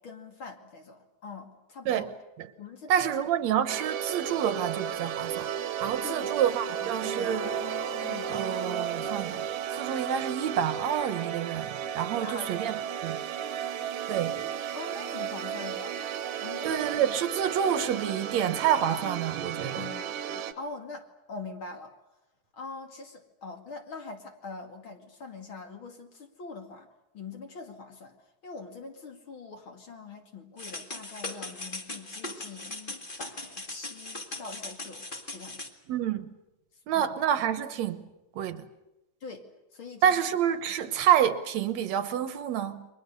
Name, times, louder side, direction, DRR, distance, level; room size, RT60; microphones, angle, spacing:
voice 1, 0.0-2.1 2.5-3.1 6.0-6.4 6.8-7.3 8.0-8.4 12.2-12.7 14.7-16.0 16.4-16.9 17.9-18.0 19.7-21.9 22.5-26.9 27.1-28.1 28.4-35.1 35.3-35.7 36.9-37.1 39.2-40.2, left 4 dB, 45° left, 3.0 m, -43 dB
voice 2, 2.9-5.5 5.8-7.6 8.3-9.5 9.7-12.7 13.0-13.2 14.1-14.4 16.6-19.9 35.9-36.3 36.9-38.1 38.4-38.7 40.0-42.9, right 9 dB, 70° right, 2.3 m, -28 dB
sound 1, 3.7-20.5, right 9 dB, 90° right, 2.6 m, -34 dB
sound 2, 4.3-5.0 5.9-6.0 6.5-9.6, right 3 dB, 30° right, 2.1 m, -41 dB
sound 3, 30.6-35.7, left 2 dB, 20° left, 1.8 m, -39 dB
29.5 x 24.0 x 6.8 m
omnidirectional pair, 3.3 m